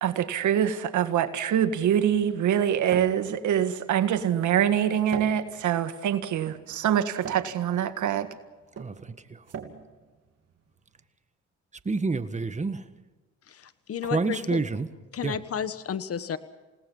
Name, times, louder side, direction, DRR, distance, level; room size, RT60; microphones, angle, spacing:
voice 1, 0.0-8.3, right 9 dB, 75° right, 1.8 m, -25 dB
sound 1, 1.3-11.0, right 7 dB, 55° right, 3.1 m, -44 dB
voice 2, 8.8-9.5 11.8-12.9 14.0-14.9 15.2-15.4, right 3 dB, 25° right, 1.7 m, -29 dB
voice 3, 13.5-14.6 15.1-16.4, left 8 dB, 50° left, 1.3 m, -32 dB
29.0 x 18.5 x 5.5 m
cardioid pair, 90°, 30 cm